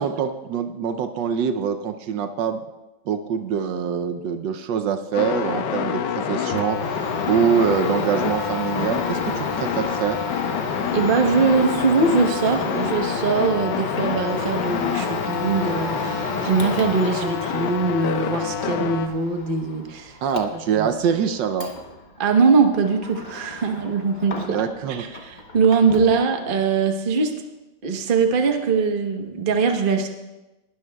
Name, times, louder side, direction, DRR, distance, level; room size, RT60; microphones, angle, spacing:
voice 1, 0.0-2.6 3.1-7.0 7.3-10.2 20.2-21.7 24.5-25.1, right 7 dB, 75° right, 8 dB, 1.3 m, -24 dB
sound 1, 5.1-19.1, left 8 dB, 70° left, 1.3 m, -27 dB
Domestic sounds home sounds, 6.5-24.8 25.1-26.2, left 2 dB, 35° left, 0.8 m, -33 dB
voice 2, 10.9-20.1 20.8-20.9 22.2-27.3 27.8-30.1, right 4 dB, 35° right, 4 dB, 0.9 m, -21 dB
19.5 x 12.5 x 2.3 m, 1.0 s
omnidirectional pair, 2.1 m